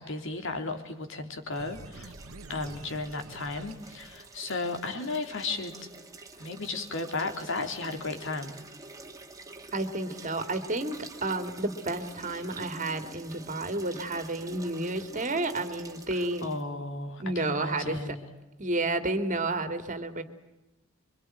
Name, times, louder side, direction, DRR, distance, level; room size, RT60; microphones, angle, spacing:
voice 1, 0.0-2.1 2.5-5.7 6.4-8.5 16.1-18.2, left 3 dB, 65° left, 6 dB, 3.5 m, -34 dB
sound 1, 1.5-16.6, right 2 dB, 15° right, 2.3 m, -48 dB
sound 2, 1.6-4.9, right 2 dB, 85° right, 1.4 m, -48 dB
voice 2, 9.7-16.5 17.2-18.2 18.6-20.2, right 2 dB, 35° right, 9 dB, 2.5 m, -31 dB
26.0 x 24.5 x 9.1 m, 0.99 s
head